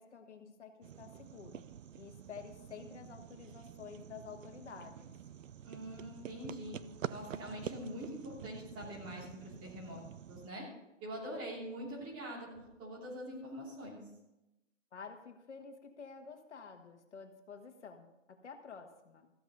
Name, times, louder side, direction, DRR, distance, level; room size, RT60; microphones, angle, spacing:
voice 1, 0.0-1.6 2.0-5.2 14.9-19.3, left 6 dB, 65° left, 5 dB, 1.7 m, -50 dB
sound 1, 0.8-10.5, right 9 dB, 85° right, 0.7 m, -48 dB
voice 2, 5.6-6.7 7.1-10.0 10.3-10.7 11.0-14.0, equal, 15° right, -5 dB, 2.8 m, -44 dB
14.5 x 7.9 x 5.5 m, 0.91 s
hypercardioid pair, 175°, 38 cm